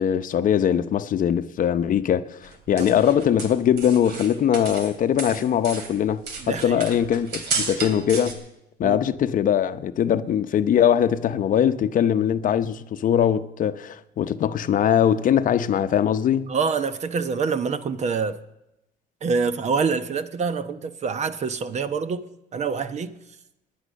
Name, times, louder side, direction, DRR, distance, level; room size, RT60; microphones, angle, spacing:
voice 1, 0.0-8.4 8.8-16.5, left 9 dB, 50° left, 0.8 m, -21 dB
sound 1, 2.4-4.9 5.2-8.3, right 4 dB, 80° right, 2.8 m, -32 dB
voice 2, 6.4-6.8 8.8-9.0 16.5-18.4 19.2-22.2 22.5-23.2, right 5 dB, 40° right, 1.0 m, -26 dB
18.5 x 10.5 x 6.4 m
cardioid pair, 110°, 17 cm